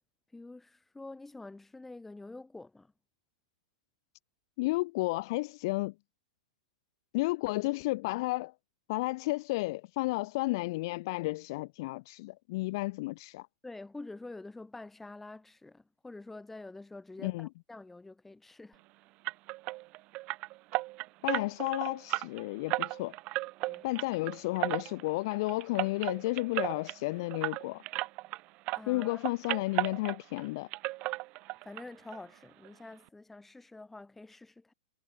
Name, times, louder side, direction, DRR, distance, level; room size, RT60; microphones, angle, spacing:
voice 1, 0.3-2.9 13.6-18.8 23.7-23.9 28.8-29.2 31.6-34.7, left 2 dB, 5° left, 7.4 m, -47 dB
voice 2, 4.6-5.9 7.1-8.5 8.9-13.5 17.2-17.5 21.2-23.2 23.8-27.8 28.9-30.7, left 22 dB, 50° left, 0.6 m, -32 dB
sound 1, 19.2-28.4 28.7-30.5 30.7-31.8 32.1-32.2 32.6-32.7 33.1-33.2, right 21 dB, 40° right, 3.4 m, -35 dB
figure-of-eight pair, 105°, 3 cm